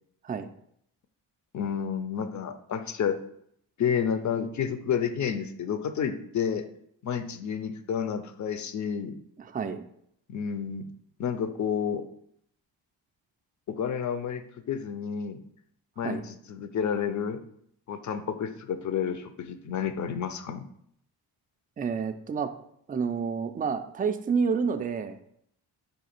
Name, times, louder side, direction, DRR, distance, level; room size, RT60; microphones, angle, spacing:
voice 1, 1.5-3.2 3.8-6.7 7.0-9.2 10.3-10.9 11.2-12.0 13.7-15.4 16.0-17.4 17.9-20.7, left 7 dB, 40° left, 10 dB, 0.5 m, -30 dB
voice 2, 9.4-9.8 16.0-16.2 21.8-22.5 22.9-25.2, right 5 dB, 20° right, 8 dB, 0.3 m, -29 dB
4.9 x 2.4 x 4.3 m, 0.70 s
supercardioid pair, 45°, 49 cm